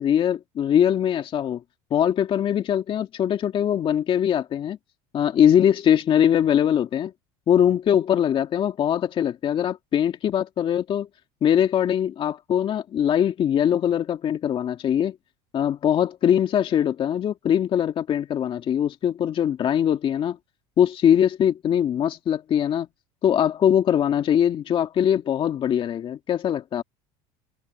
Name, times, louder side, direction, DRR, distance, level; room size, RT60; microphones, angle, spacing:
voice 1, 0.0-1.6 1.9-4.8 5.1-7.1 7.5-11.1 11.4-15.2 15.5-20.4 20.8-22.9 23.2-26.8, left 9 dB, 40° left, 2.1 m, -22 dB
supercardioid pair, 105°, 13 cm